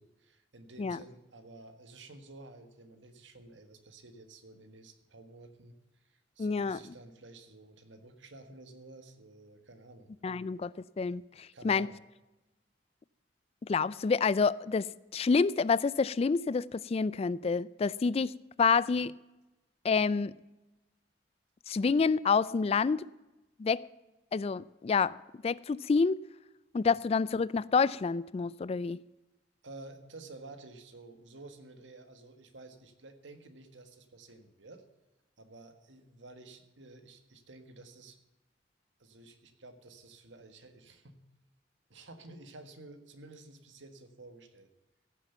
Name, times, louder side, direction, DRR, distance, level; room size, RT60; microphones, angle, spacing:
voice 1, 0.0-10.1 11.5-11.9 29.6-34.8 35.4-38.2 39.0-41.2 41.9-44.7, right 2 dB, 80° right, 1.6 m, -52 dB
voice 2, 6.4-6.8 10.2-11.9 13.6-14.9 15.1-19.1 19.8-20.3 21.7-23.0 23.6-23.8 24.3-25.2 25.4-26.2 26.7-29.0, left 5 dB, 35° left, 0.3 m, -28 dB
16.0 x 7.3 x 6.9 m
head